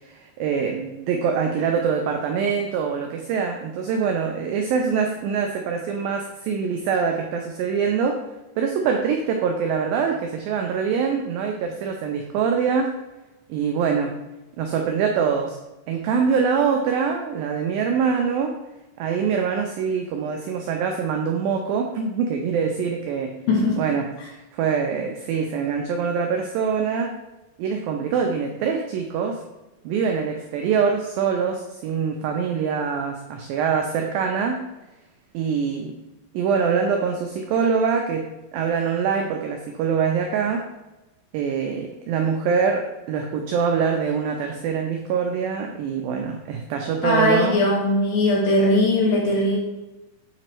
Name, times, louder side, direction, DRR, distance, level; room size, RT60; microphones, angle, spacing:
voice 1, 0.1-8.2 8.6-12.9 13.5-14.1 14.6-15.6 15.9-18.6 19.0-23.3 23.8-27.2 27.6-29.4 29.9-34.6 35.3-36.0 36.3-40.7 41.3-47.6, right 6 dB, 90° right, 3 dB, 2.0 m, -24 dB
voice 2, 23.5-23.8 47.0-49.6, left 1 dB, 75° left, -1 dB, 2.2 m, -19 dB
7.6 x 3.0 x 4.4 m, 1.0 s
omnidirectional pair, 4.7 m